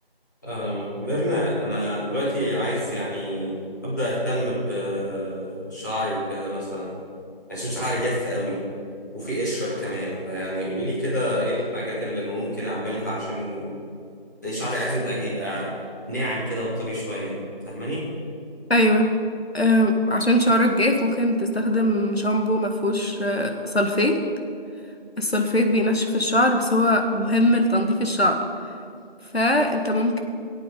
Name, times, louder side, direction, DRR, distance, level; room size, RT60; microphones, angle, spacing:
voice 1, 0.4-6.9 7.5-8.6 9.1-13.7 14.4-15.8 16.1-18.1, equal, 20° left, -9 dB, 2.4 m, -28 dB
voice 2, 18.7-19.1 19.5-24.2 25.2-28.4 29.3-30.2, left 1 dB, 90° left, 4 dB, 1.8 m, -21 dB
17.0 x 8.5 x 5.3 m, 2.4 s
figure-of-eight pair, 175°, 30 cm